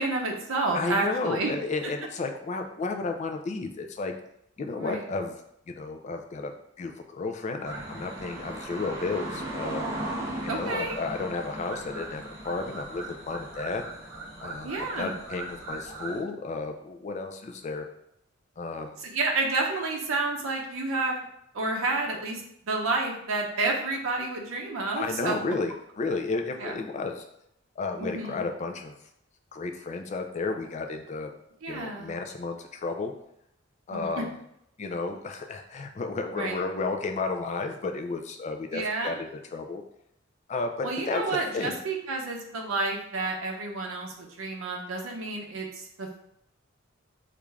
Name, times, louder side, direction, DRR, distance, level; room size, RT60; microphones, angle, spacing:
voice 1, 0.0-1.5 4.8-5.0 10.5-11.0 14.6-15.1 19.0-21.2 21.5-25.3 26.6-26.7 28.0-28.4 31.6-32.2 33.9-34.2 36.3-36.6 38.7-39.2 40.8-46.2, right 3 dB, 90° right, 0 dB, 0.6 m, -30 dB
voice 2, 0.7-4.1 4.6-5.4 5.7-9.9 10.4-13.8 14.4-17.9 18.6-19.0 24.9-27.2 27.8-29.0 29.5-31.3 31.7-33.1 33.9-34.4 34.8-39.8 40.5-41.8, left 3 dB, 35° left, 4 dB, 0.3 m, -32 dB
sound 1, 7.6-16.2, right 1 dB, 15° right, 0.8 m, -37 dB
3.1 x 2.5 x 3.4 m, 0.76 s
head